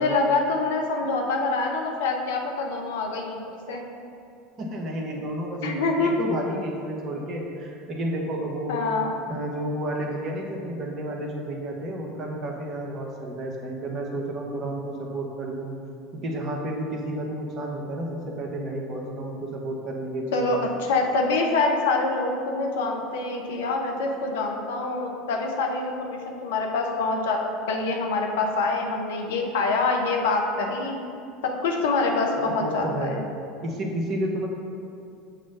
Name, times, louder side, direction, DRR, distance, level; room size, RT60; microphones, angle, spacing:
voice 1, 0.0-3.4 3.7-3.8 5.6-6.1 8.7-9.2 20.3-27.4 27.7-31.0 31.4-33.2, left 3 dB, 70° left, 1 dB, 0.8 m, -25 dB
voice 2, 4.6-8.8 9.3-15.7 16.2-20.5 32.4-33.2 33.6-34.5, right 1 dB, 40° right, 0 dB, 1.1 m, -31 dB
7.4 x 3.2 x 5.4 m, 2.5 s
figure-of-eight pair, 75°, 0 cm